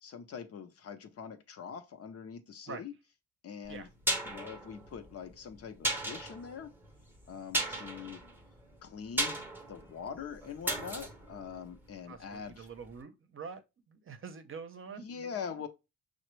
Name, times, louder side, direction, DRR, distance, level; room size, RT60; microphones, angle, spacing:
voice 1, 0.0-2.9 3.4-3.9 4.2-6.7 7.3-8.2 8.8-12.7 15.0-15.7, left 7 dB, 50° left, 0.7 m, -43 dB
sound 1, 3.7-12.5 12.8-12.9, right 1 dB, 5° right, 0.8 m, -37 dB
voice 2, 12.1-13.6 13.9-15.1, right 5 dB, 45° right, 0.7 m, -45 dB
5.7 x 2.1 x 3.1 m
cardioid pair, 90°, 30 cm